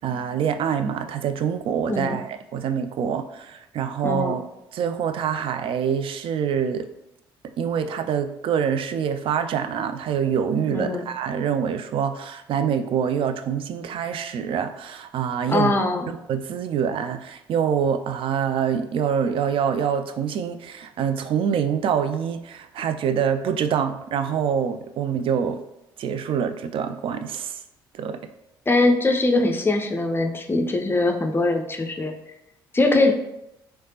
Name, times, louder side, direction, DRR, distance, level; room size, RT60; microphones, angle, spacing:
voice 1, 0.0-4.4 4.7-6.9 7.6-15.7 16.1-25.6 26.0-27.6 27.9-28.2, right 7 dB, 45° right, 9 dB, 0.3 m, -25 dB
voice 2, 4.0-4.3 10.7-11.1 15.5-16.0 28.7-32.1 32.7-33.1, left 2 dB, 20° left, 5 dB, 0.5 m, -21 dB
3.2 x 3.1 x 2.8 m, 0.85 s
hypercardioid pair, 50°, 12 cm